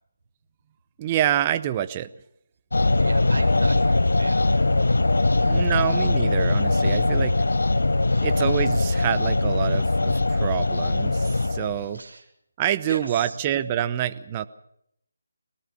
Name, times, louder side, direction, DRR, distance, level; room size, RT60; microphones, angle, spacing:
voice 1, 1.0-2.1 5.4-7.4 8.2-12.0 12.6-14.5, right 11 dB, 25° right, 13 dB, 0.9 m, -26 dB
sound 1, 2.7-11.9, left 2 dB, 75° left, 0.8 m, -21 dB
voice 2, 2.9-4.7 5.3-5.6 8.1-8.3 11.9-12.2 12.9-13.4, right 3 dB, 70° right, -3 dB, 4.3 m, -38 dB
21.5 x 19.0 x 7.0 m, 0.74 s
figure-of-eight pair, 155°, 0 cm